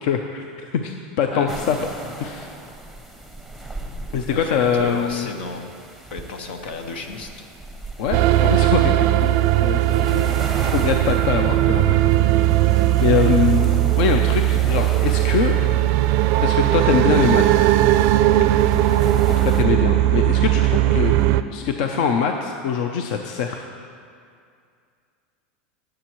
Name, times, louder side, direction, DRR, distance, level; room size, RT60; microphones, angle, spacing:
voice 1, 0.0-1.8 2.2-2.5 4.1-5.3 8.0-12.0 12.3-12.6 13.0-15.6 16.4-17.6 19.3-21.2 21.5-23.7, left 7 dB, 65° left, 4 dB, 0.6 m, -23 dB
voice 2, 1.3-1.9 4.3-5.7 6.1-7.5, left 3 dB, 85° left, 5 dB, 1.2 m, -33 dB
sound 1, 1.5-19.6, right 1 dB, 5° left, 0.8 m, -38 dB
sound 2, 8.1-21.4, right 14 dB, 50° right, 0.4 m, -18 dB
20.0 x 7.6 x 3.1 m, 2.3 s
supercardioid pair, 135°, 5 cm